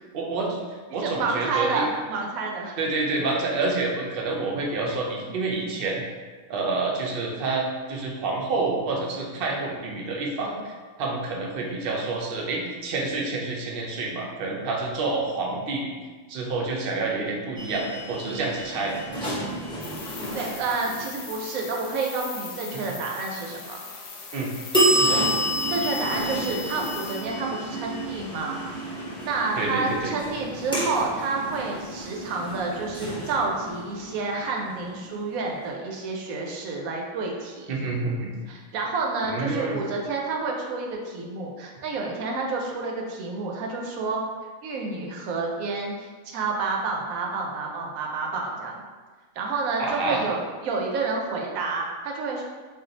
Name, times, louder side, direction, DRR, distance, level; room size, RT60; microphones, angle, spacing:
voice 1, 0.1-0.6 0.9-1.9 2.8-6.0 6.5-10.7 11.0-15.9 16.3-19.0 24.3-24.5 24.9-25.2 29.6-30.1 37.7-38.3 39.3-39.8 49.8-50.2, right 3 dB, 60° right, -1 dB, 0.6 m, -28 dB
voice 2, 0.9-2.8 20.3-23.8 25.1-25.3 25.7-28.6 29.2-37.7 38.5-44.2 44.6-48.8 49.4-52.4, right 4 dB, 80° right, 0 dB, 1.0 m, -29 dB
sound 1, 17.6-21.3 24.7-35.4, right 1 dB, 5° left, 0.5 m, -29 dB
sound 2, 19.8-27.3, left 4 dB, 70° left, 0.8 m, -40 dB
2.5 x 2.3 x 3.8 m, 1.4 s
omnidirectional pair, 1.5 m